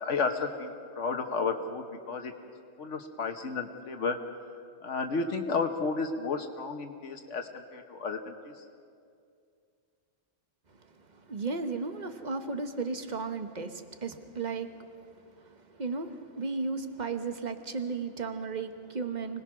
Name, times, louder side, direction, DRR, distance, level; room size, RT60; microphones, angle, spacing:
voice 1, 0.0-2.3 2.8-4.2 4.8-8.6, left 4 dB, 75° left, 5 dB, 1.4 m, -32 dB
voice 2, 11.3-14.7 15.8-19.4, right 4 dB, 40° right, 8 dB, 1.2 m, -34 dB
25.0 x 19.5 x 6.0 m, 2.3 s
omnidirectional pair, 1.3 m